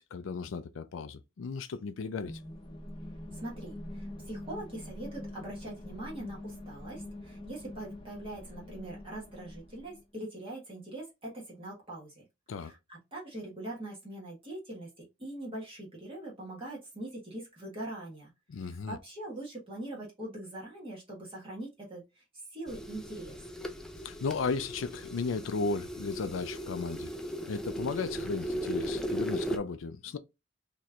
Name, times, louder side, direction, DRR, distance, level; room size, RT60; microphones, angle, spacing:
voice 1, 0.0-2.4 12.5-12.7 18.5-19.0 24.0-27.1 27.5-30.2, left 4 dB, 85° left, 0.4 m, -35 dB
sound 1, 2.2-10.0, left 1 dB, 25° left, 0.8 m, -44 dB
voice 2, 3.3-12.2 12.6-18.3 18.5-22.2 22.5-23.4, right 1 dB, 30° right, 1.5 m, -42 dB
sound 2, 22.7-29.6, right 1 dB, 5° left, 0.5 m, -37 dB
4.3 x 3.0 x 2.4 m
head